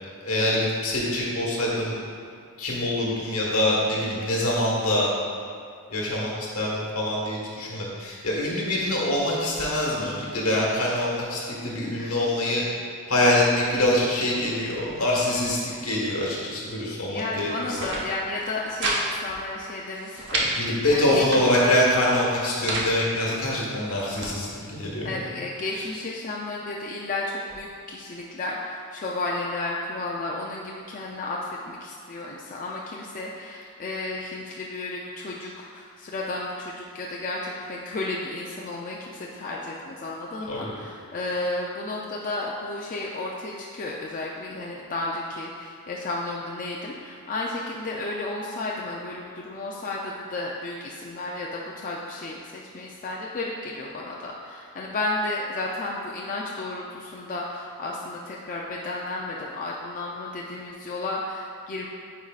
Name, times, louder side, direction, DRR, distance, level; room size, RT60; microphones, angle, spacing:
voice 1, 0.2-1.9 2.6-5.1 5.9-12.6 13.1-17.8 20.3-25.2 25.7-25.9 40.5-40.7, left 1 dB, 70° left, -4 dB, 1.4 m, -25 dB
voice 2, 17.1-20.4 20.9-21.4 25.0-61.9, left 2 dB, 40° left, -3 dB, 0.4 m, -33 dB
sound 1, 17.6-18.0 18.4-19.0 19.3-19.4 19.8-20.5 21.0-21.7 22.3-22.9 23.6-24.3, right 2 dB, 55° right, 1.0 m, -30 dB
9.5 x 4.7 x 2.4 m, 2.4 s
head